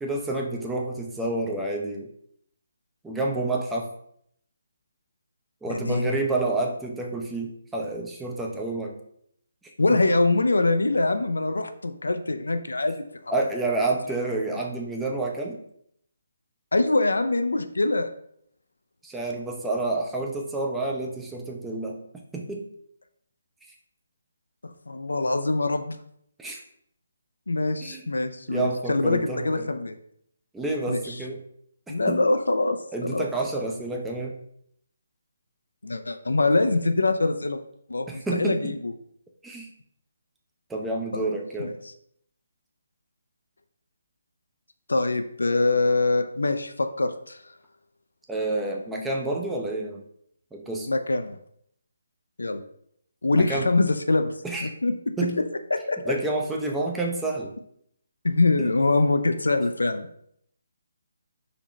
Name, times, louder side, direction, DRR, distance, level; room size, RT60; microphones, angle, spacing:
voice 1, 0.0-2.1 3.0-3.9 5.6-8.9 9.9-10.2 13.3-15.6 19.0-22.0 22.3-22.6 26.4-26.6 27.8-28.1 28.5-29.7 30.5-31.4 31.9-32.2 32.9-34.4 38.1-38.8 39.4-39.7 40.7-41.7 48.3-50.0 50.5-50.9 53.3-53.7 54.4-54.7 55.2-55.4 56.1-57.5 58.6-58.7, right 2 dB, 5° right, -1 dB, 0.5 m, -29 dB
voice 2, 5.7-6.2 9.8-13.1 16.7-18.1 24.6-26.0 27.5-30.0 30.9-31.0 31.9-33.3 35.8-37.6 37.9-38.9 41.1-41.2 41.6-41.7 44.9-47.4 50.9-51.4 52.4-52.6 53.2-54.3 54.6-55.4 55.7-56.1 58.2-60.1, left 2 dB, 70° left, 8 dB, 0.4 m, -24 dB
3.9 x 2.9 x 3.1 m, 0.70 s
figure-of-eight pair, 145°, 0 cm